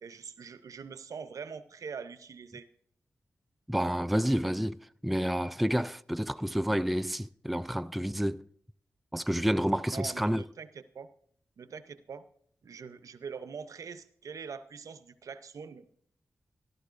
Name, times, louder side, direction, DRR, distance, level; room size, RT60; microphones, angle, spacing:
voice 1, 0.0-2.7 9.9-11.1 11.6-12.2 12.6-15.9, right 6 dB, 75° right, 0.6 m, -43 dB
voice 2, 3.7-8.5 9.1-10.4, equal, ahead, 0.3 m, -29 dB
15.0 x 12.0 x 2.5 m
cardioid pair, 50°, 6 cm